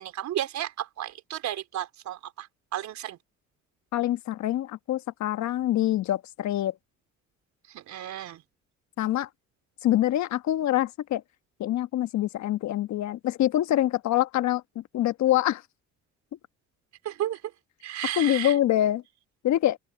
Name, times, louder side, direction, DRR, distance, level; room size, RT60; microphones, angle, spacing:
voice 1, 0.0-3.2 7.7-8.4 17.0-17.4 17.8-18.6, right 12 dB, 65° right, 3.9 m, -33 dB
voice 2, 3.9-6.7 9.0-9.3 9.8-11.2 11.6-15.6 18.2-19.0 19.4-19.8, left 13 dB, 65° left, 1.3 m, -25 dB
open air
supercardioid pair, 70°, 30 cm